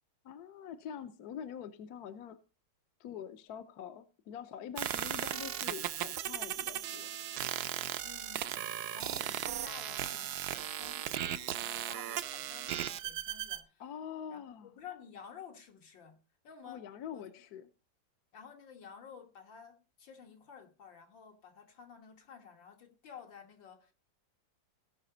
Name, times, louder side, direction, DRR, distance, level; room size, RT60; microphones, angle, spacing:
voice 1, 0.2-2.4 3.0-7.1 9.1-9.2 13.8-14.7 16.7-17.7, left 8 dB, 65° left, 1.2 m, -45 dB
sound 1, 4.8-13.6, right 11 dB, 65° right, 1.1 m, -37 dB
voice 2, 8.0-13.8 14.3-17.4 18.3-23.9, left 7 dB, 80° left, 2.3 m, -53 dB
16.5 x 5.8 x 3.9 m
omnidirectional pair, 2.0 m